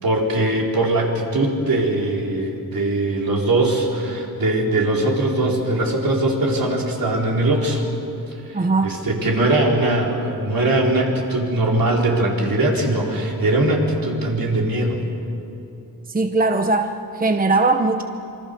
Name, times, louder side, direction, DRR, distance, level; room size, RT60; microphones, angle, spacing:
voice 1, 0.0-7.8 8.5-15.0, right 2 dB, 60° right, -1 dB, 4.6 m, -21 dB
voice 2, 8.5-9.0 16.1-18.0, right 3 dB, 20° right, 6 dB, 1.0 m, -20 dB
26.5 x 24.0 x 7.0 m, 2.8 s
wide cardioid pair, 100°, 38 cm